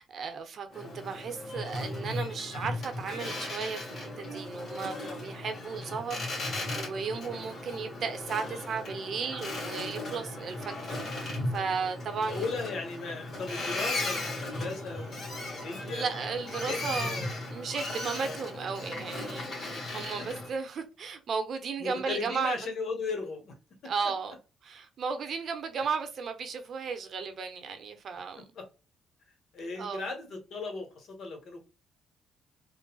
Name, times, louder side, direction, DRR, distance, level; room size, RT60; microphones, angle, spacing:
voice 1, 0.0-12.5 15.5-22.6 23.8-24.3 24.6-28.4 29.8-30.1, right 5 dB, 60° right, 0.7 m, -35 dB
Boat Water vehicle, 0.7-20.5, left 2 dB, 50° left, 1.6 m, -37 dB
voice 2, 12.1-17.2 18.2-18.4 21.8-23.5 23.8-23.9 28.5-28.6 29.5-31.6, left 4 dB, 65° left, 1.2 m, -37 dB
3.9 x 2.1 x 2.3 m
cardioid pair, 90°, 0 cm